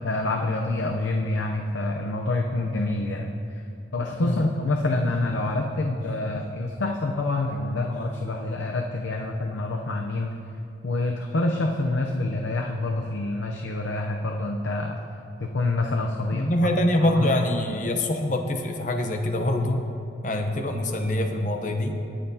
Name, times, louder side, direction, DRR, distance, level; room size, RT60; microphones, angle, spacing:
voice 1, 0.0-3.3 3.9-10.3 10.8-15.0 15.4-16.5 17.0-17.8, left 2 dB, 90° left, 2 dB, 0.6 m, -27 dB
voice 2, 16.3-19.8 20.2-22.0, left 1 dB, 45° left, 4 dB, 0.8 m, -24 dB
19.5 x 7.6 x 2.8 m, 2.8 s
head